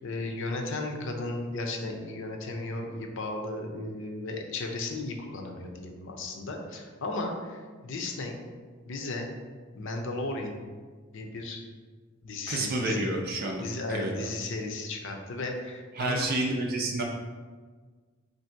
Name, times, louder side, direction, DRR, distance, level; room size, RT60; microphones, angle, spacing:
voice 1, 0.0-8.4 8.9-9.3 9.7-10.6 11.1-11.6 12.2-13.1 13.6-16.3, left 2 dB, 65° left, 2 dB, 0.6 m, -35 dB
voice 2, 12.5-14.3 15.9-17.0, right 2 dB, 50° right, 1 dB, 0.4 m, -30 dB
3.4 x 2.6 x 4.4 m, 1.5 s
head